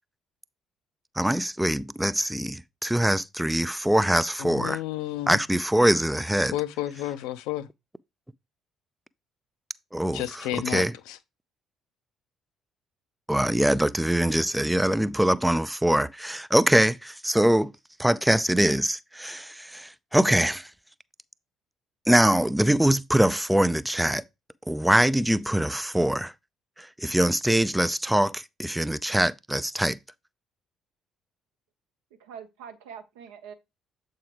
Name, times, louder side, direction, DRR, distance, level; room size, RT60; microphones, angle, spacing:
voice 1, 1.2-4.8 5.3-6.5 9.9-10.9 13.3-17.7 18.0-20.7 22.1-24.2 24.7-26.3 26.8-30.0, right 1 dB, 5° right, 0.4 m, -23 dB
voice 2, 4.4-5.4 6.5-7.7 10.1-11.2, left 14 dB, 65° left, 0.5 m, -31 dB
voice 3, 32.2-33.5, right 7 dB, 70° right, 0.8 m, -43 dB
7.7 x 4.7 x 3.0 m
figure-of-eight pair, 45°, 0 cm